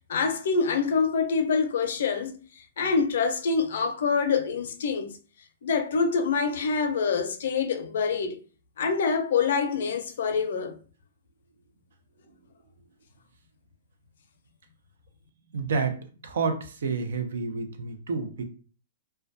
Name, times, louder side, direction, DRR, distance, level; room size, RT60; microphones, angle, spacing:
voice 1, 0.1-5.1 5.6-8.4 8.8-10.8, left 5 dB, 65° left, 0.5 m, -26 dB
voice 2, 15.5-18.4, right 4 dB, 75° right, 0.5 m, -30 dB
2.2 x 2.2 x 2.5 m
hypercardioid pair, 160°, 0 cm